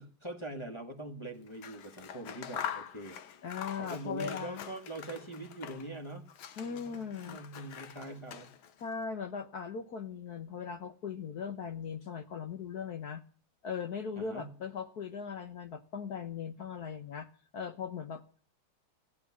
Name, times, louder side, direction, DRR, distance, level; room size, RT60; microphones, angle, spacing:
voice 1, 0.0-3.2 3.8-6.3 6.6-8.5 14.2-14.5, right 2 dB, 15° left, 2 dB, 1.4 m, -43 dB
Scissors, 1.5-6.0 6.3-8.8, left 9 dB, 80° left, 2.0 m, -44 dB
voice 2, 3.4-4.7 6.6-7.4 8.8-13.2 13.6-18.2, left 6 dB, 55° left, 10 dB, 1.3 m, -39 dB
16.0 x 12.0 x 7.2 m, 0.40 s
omnidirectional pair, 2.2 m